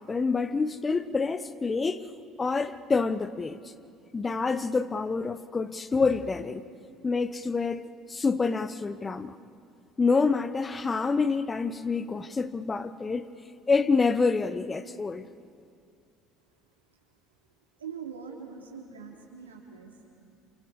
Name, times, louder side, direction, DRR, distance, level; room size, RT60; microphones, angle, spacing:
voice 1, 0.0-2.1 2.4-3.6 4.1-6.6 7.0-9.4 10.0-13.3 13.7-15.2, left 4 dB, 25° left, 1.0 m, -27 dB
voice 2, 17.8-20.1, right 6 dB, 80° right, 3.2 m, -42 dB
28.5 x 27.5 x 4.9 m
figure-of-eight pair, 60°, 0 cm